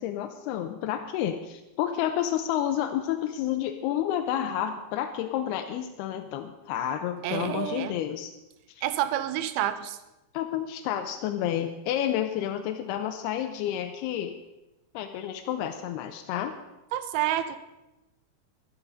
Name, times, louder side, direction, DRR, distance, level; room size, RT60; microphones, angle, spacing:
voice 1, 0.0-8.3 8.7-8.8 10.3-14.4 14.9-16.6, left 10 dB, 90° left, 6 dB, 2.7 m, -30 dB
voice 2, 7.2-8.0 8.8-10.0 16.9-17.6, right 12 dB, 80° right, 12 dB, 2.5 m, -28 dB
12.5 x 12.5 x 5.1 m, 0.98 s
omnidirectional pair, 4.6 m